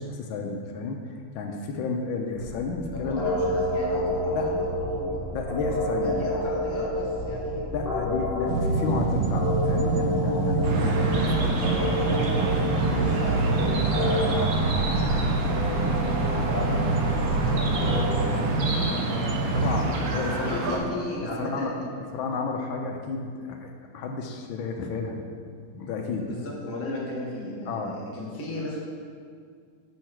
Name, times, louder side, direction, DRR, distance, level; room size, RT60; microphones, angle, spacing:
voice 1, 0.0-3.3 4.3-4.5 5.3-6.1 7.7-11.5 19.5-20.8 21.4-21.7 22.1-26.3 27.7-27.9, left 4 dB, 75° left, 3 dB, 1.4 m, -32 dB
sound 1, 2.4-18.3, left 1 dB, 40° left, 0.9 m, -30 dB
voice 2, 2.9-5.2 6.0-7.7 11.0-15.9 16.3-16.8 17.3-19.6 20.4-22.4 26.2-28.8, left 1 dB, 15° left, -4 dB, 0.5 m, -35 dB
sound 2, 8.5-20.0, right 3 dB, 85° right, 1.5 m, -26 dB
sound 3, 10.6-20.8, right 2 dB, 60° right, 1.0 m, -31 dB
6.4 x 5.6 x 4.4 m, 2.1 s
omnidirectional pair, 2.3 m